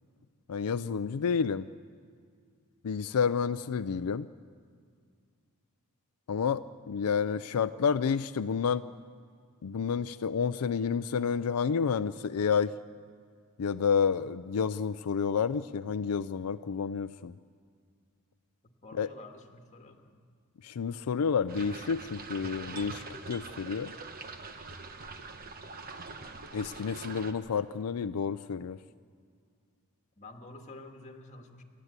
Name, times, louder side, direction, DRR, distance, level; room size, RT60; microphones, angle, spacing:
voice 1, 0.5-1.6 2.8-4.3 6.3-8.9 9.6-12.7 13.6-17.3 18.9-19.1 20.6-23.9 26.5-28.8, left 6 dB, 85° left, 11 dB, 0.4 m, -30 dB
voice 2, 18.6-20.2 30.2-31.6, left 2 dB, 30° left, 4 dB, 1.7 m, -49 dB
sound 1, 21.5-27.3, right 3 dB, 40° right, 1.1 m, -43 dB
29.0 x 12.0 x 8.2 m, 2.1 s
head